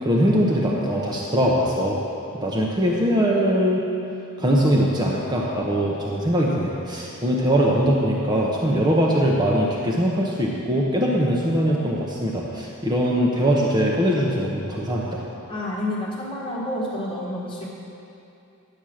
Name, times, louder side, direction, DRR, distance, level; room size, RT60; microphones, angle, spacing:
voice 1, 0.0-2.0 2.3-3.8 4.4-15.2, equal, 20° right, -3 dB, 0.8 m, -21 dB
voice 2, 15.5-17.7, left 1 dB, 25° left, -5 dB, 1.7 m, -29 dB
10.5 x 7.1 x 6.3 m, 2.7 s
head